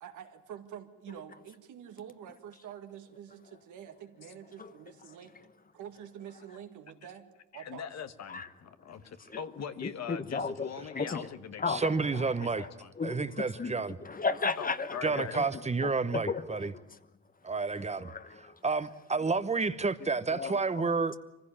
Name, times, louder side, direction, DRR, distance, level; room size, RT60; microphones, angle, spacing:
voice 1, 0.0-5.3 5.7-7.9 11.8-11.9 19.2-19.3, right 9 dB, 80° right, 2.1 m, -47 dB
voice 2, 7.5-12.9 14.6-15.4, left 7 dB, 60° left, 1.4 m, -42 dB
voice 3, 9.8-11.2 11.6-12.7 13.0-16.8 17.7-18.6 20.3-20.8, left 4 dB, 30° left, 1.1 m, -36 dB
voice 4, 11.7-12.7 13.0-13.9 15.0-16.7 17.4-18.1 18.6-21.1, right 4 dB, 20° right, 1.1 m, -30 dB
24.0 x 15.5 x 8.8 m
cardioid pair, 90°, 30 cm